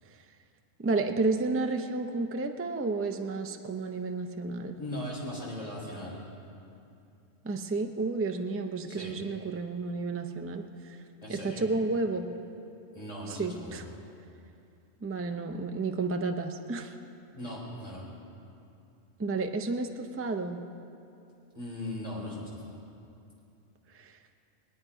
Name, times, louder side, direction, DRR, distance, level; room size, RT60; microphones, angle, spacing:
voice 1, 0.8-4.8 7.4-11.0 11.3-12.3 13.3-13.8 15.0-16.9 19.2-20.6 24.0-24.1, right 3 dB, 20° right, 5 dB, 0.4 m, -31 dB
voice 2, 4.8-6.2 8.9-9.1 11.2-11.7 12.9-13.9 17.3-18.0 21.5-22.8, left 1 dB, 30° left, -6 dB, 4.0 m, -39 dB
22.0 x 9.3 x 4.9 m, 2.6 s
omnidirectional pair, 1.3 m